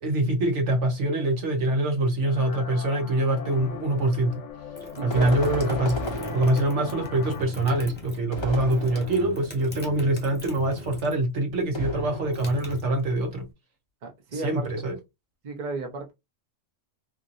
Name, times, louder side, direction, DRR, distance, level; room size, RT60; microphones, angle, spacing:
voice 1, 0.0-4.4 5.0-13.5 14.3-15.0, right 1 dB, 65° right, 1.1 m, -25 dB
sound 1, 2.2-7.4, left 6 dB, 65° left, 1.0 m, -39 dB
sound 2, 4.5-11.3 11.6-13.4, left 2 dB, 10° left, 0.9 m, -41 dB
voice 2, 5.0-5.4 14.0-14.7 15.4-16.1, right 3 dB, 40° right, 0.9 m, -33 dB
sound 3, 5.1-7.1 8.3-9.5 11.7-12.7, left 1 dB, 30° left, 0.5 m, -33 dB
3.0 x 2.6 x 2.5 m
omnidirectional pair, 1.4 m